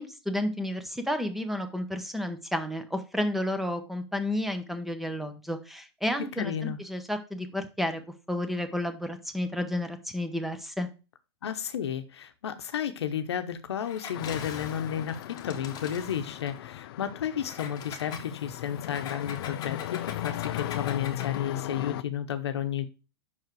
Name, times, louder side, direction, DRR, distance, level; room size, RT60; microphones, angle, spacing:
voice 1, 0.0-8.0 8.3-10.9, left 1 dB, ahead, 1.0 m, -31 dB
voice 2, 6.4-6.8 11.4-22.9, left 9 dB, 85° left, 0.9 m, -32 dB
Engine, 13.8-16.6 17.4-21.5, left 7 dB, 30° left, 1.2 m, -43 dB
sound 1, 14.1-22.0, left 15 dB, 65° left, 0.4 m, -37 dB
5.8 x 4.7 x 4.6 m
hypercardioid pair, 120°, 14 cm